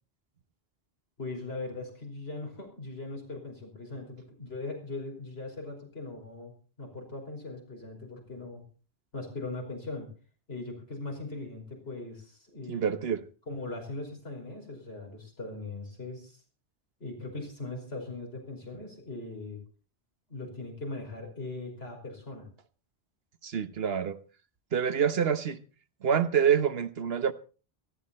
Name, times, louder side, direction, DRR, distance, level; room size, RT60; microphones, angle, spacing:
voice 1, 1.2-6.5 6.8-8.6 9.1-10.1 10.5-12.9 13.5-16.4 17.0-19.6 20.3-22.5, left 2 dB, 75° left, 5.7 m, -40 dB
voice 2, 12.7-13.2 23.4-24.2 24.7-25.6 26.0-27.3, right 7 dB, 70° right, 1.2 m, -26 dB
18.5 x 15.0 x 4.2 m
omnidirectional pair, 1.1 m